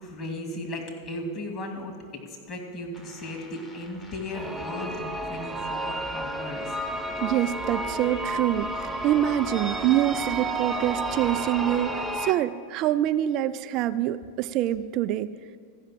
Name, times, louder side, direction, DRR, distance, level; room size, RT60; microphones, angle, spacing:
voice 1, 0.0-2.0 2.5-6.8, left 1 dB, 35° left, 3 dB, 2.5 m, -36 dB
sound 1, 2.9-9.9, left 2 dB, 20° left, 1.3 m, -51 dB
sound 2, 4.3-12.3, right 2 dB, 5° right, 0.8 m, -31 dB
voice 2, 7.2-15.3, right 12 dB, 45° right, 11 dB, 0.3 m, -25 dB
14.0 x 5.7 x 7.5 m, 2.2 s
hypercardioid pair, 95°, 0 cm